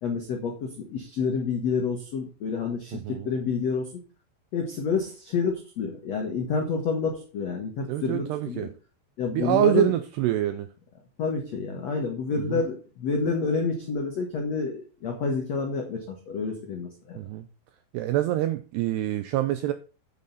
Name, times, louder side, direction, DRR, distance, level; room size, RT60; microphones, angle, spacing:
voice 1, 0.0-3.9 4.5-8.7 9.2-9.9 11.2-17.2, left 5 dB, 85° left, 2 dB, 1.4 m, -28 dB
voice 2, 2.9-3.3 7.9-8.7 9.3-10.7 12.4-12.6 17.2-17.4 17.9-19.7, right 13 dB, 85° right, 10 dB, 2.3 m, -26 dB
10.5 x 7.4 x 4.1 m, 0.35 s
omnidirectional pair, 5.4 m